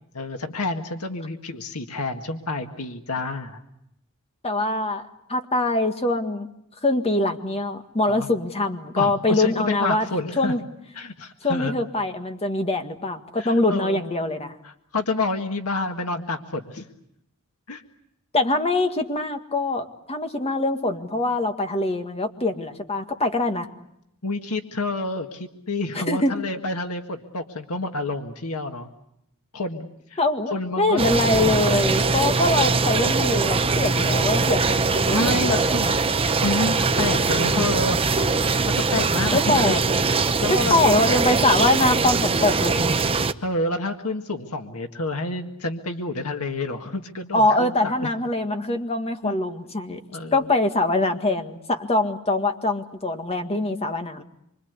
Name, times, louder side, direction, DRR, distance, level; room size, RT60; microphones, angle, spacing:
voice 1, 0.1-3.6 8.1-8.3 9.0-10.5 10.9-11.7 13.4-14.0 14.6-16.9 17.7-17.8 24.2-28.9 29.5-30.2 30.5-31.0 35.1-35.9 36.4-38.0 38.7-39.7 40.4-41.2 43.4-48.1 49.2-49.4 50.1-50.5, left 2 dB, 90° left, 5 dB, 1.8 m, -28 dB
voice 2, 4.4-5.0 5.3-6.5 6.8-10.1 10.4-10.6 11.4-14.5 18.3-23.7 25.9-26.4 30.2-36.0 39.3-39.8 40.5-42.9 47.3-50.0 50.3-54.2, left 2 dB, 30° left, 6 dB, 1.9 m, -23 dB
sound 1, 31.0-43.3, right 4 dB, 25° right, 1.0 m, -22 dB
26.5 x 25.0 x 8.2 m, 0.79 s
head